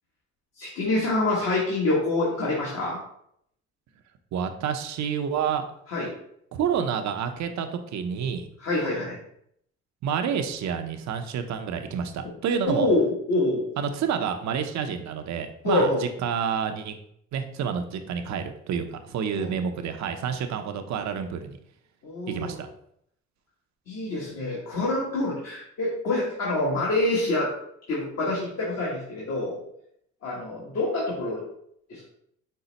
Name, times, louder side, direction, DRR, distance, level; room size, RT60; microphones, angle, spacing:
voice 1, 0.6-3.0 5.9-6.1 8.6-9.1 12.6-13.7 15.6-16.0 19.4-19.5 22.0-22.5 23.9-27.5 27.9-29.6 30.2-31.4 31.9-32.0, left 2 dB, 60° left, -5 dB, 1.3 m, -26 dB
voice 2, 4.3-5.6 6.5-8.5 10.0-12.9 13.8-17.0 17.3-21.6 22.3-22.7, right 7 dB, 65° right, 7 dB, 0.6 m, -29 dB
5.3 x 2.0 x 3.9 m, 0.72 s
cardioid pair, 90°, 30 cm